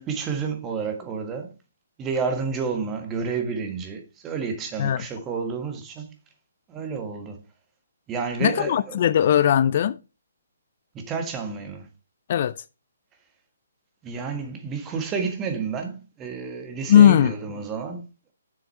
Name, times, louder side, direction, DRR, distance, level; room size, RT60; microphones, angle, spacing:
voice 1, 0.0-1.5 2.0-6.1 6.7-7.4 8.1-9.0 10.9-11.9 14.0-18.3, right 5 dB, 15° right, 1.5 m, -30 dB
voice 2, 8.4-10.0 12.3-12.5 16.9-17.3, left 10 dB, 45° left, 0.4 m, -18 dB
7.4 x 6.4 x 4.5 m
hypercardioid pair, 155°, 0 cm